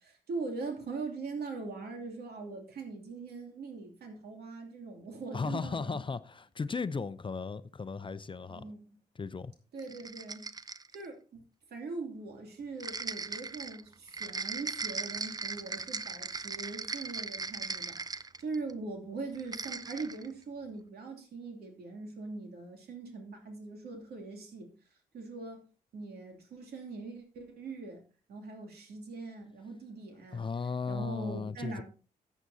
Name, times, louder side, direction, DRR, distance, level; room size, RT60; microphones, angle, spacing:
voice 1, 0.0-6.0 8.5-9.0 9.7-10.5 10.9-11.4 11.7-24.7 25.1-25.6 25.9-28.0 28.3-30.5 30.9-31.8, right 3 dB, 70° right, 2.7 m, -41 dB
voice 2, 5.3-8.7 9.2-9.5 30.3-31.8, left 4 dB, 30° left, 0.6 m, -36 dB
sound 1, 9.8-11.1 12.8-18.7 19.3-20.3, right 4 dB, 25° right, 0.6 m, -38 dB
14.5 x 8.3 x 2.7 m
supercardioid pair, 55°, 17 cm